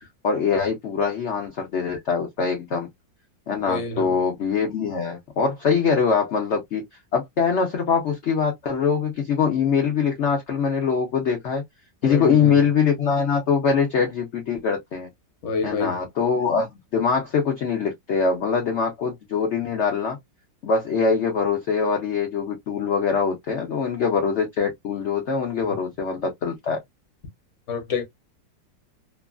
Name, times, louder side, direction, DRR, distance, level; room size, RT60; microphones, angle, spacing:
voice 1, 0.2-2.9 3.5-6.8 7.1-11.6 12.0-15.1 15.6-20.2 20.6-26.8, left 6 dB, 70° left, 0.6 m, -23 dB
voice 2, 3.7-4.2 12.0-12.6 15.4-16.0 25.6-25.8 27.7-28.0, left 4 dB, 45° left, 1.1 m, -28 dB
3.0 x 2.4 x 2.2 m
omnidirectional pair, 1.9 m